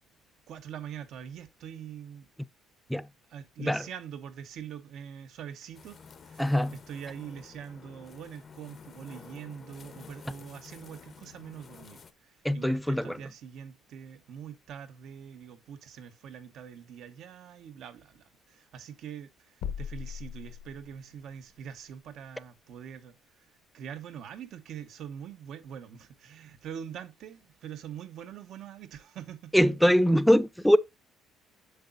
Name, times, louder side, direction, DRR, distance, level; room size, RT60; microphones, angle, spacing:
voice 1, 0.5-2.3 3.3-6.5 6.9-29.6, right 8 dB, 60° right, 1.0 m, -44 dB
sound 1, 5.7-12.1, left 6 dB, 35° left, 0.7 m, -51 dB
voice 2, 6.4-6.8 12.4-13.2 29.5-30.8, equal, ahead, 0.4 m, -23 dB
sound 2, 19.6-21.2, left 8 dB, 75° left, 1.0 m, -38 dB
7.9 x 7.0 x 2.5 m
cardioid pair, 135°, 0 cm